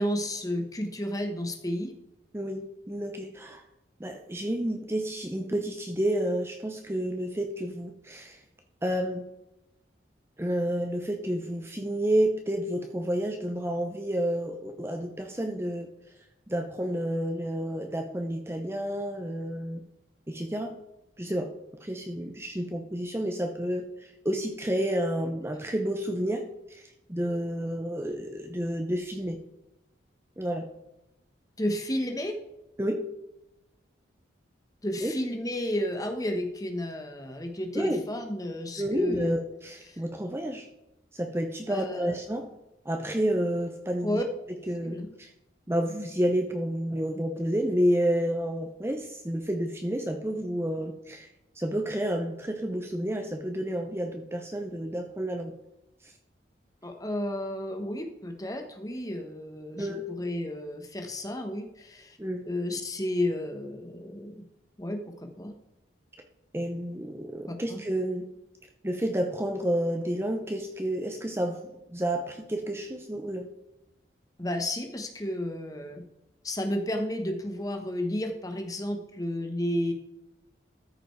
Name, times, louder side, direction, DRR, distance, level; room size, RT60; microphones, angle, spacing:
voice 1, 0.0-1.9 31.6-32.4 34.8-39.4 39.9-40.0 41.7-42.2 44.0-44.2 44.8-45.1 56.8-62.2 62.4-64.4 64.8-65.5 67.5-67.8 74.4-76.0 76.4-79.9, left 1 dB, 20° left, 5 dB, 1.1 m, -32 dB
voice 2, 2.3-3.6 4.0-8.4 8.8-9.3 10.4-15.9 16.5-19.8 20.3-20.8 21.2-21.5 21.8-29.4 30.4-30.7 32.8-33.0 35.0-35.1 37.7-38.0 38.8-40.7 41.1-42.5 42.8-44.2 44.7-45.3 45.7-51.3 51.5-55.5 56.0-56.1 59.8-60.0 62.2-62.4 66.5-68.3 68.8-73.5, right 1 dB, 15° right, 4 dB, 0.6 m, -30 dB
13.5 x 5.1 x 4.6 m, 0.89 s
head